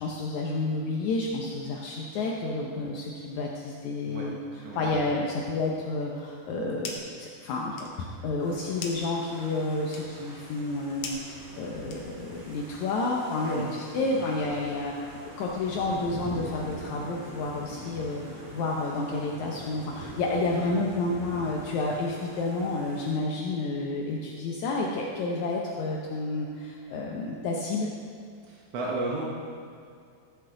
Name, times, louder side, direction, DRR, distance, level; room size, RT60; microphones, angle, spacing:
voice 1, 0.0-4.4 4.7-15.0 15.4-27.9, left 2 dB, 85° left, -1 dB, 1.6 m, -30 dB
sound 1, 6.4-7.2 7.5-12.4, left 4 dB, 65° left, 1.9 m, -43 dB
sound 2, 8.4-23.1, right 1 dB, 50° right, 4.0 m, -43 dB
voice 2, 28.4-29.2, right 2 dB, 75° right, -3 dB, 1.4 m, -33 dB
15.0 x 8.1 x 3.9 m, 2.3 s
omnidirectional pair, 4.4 m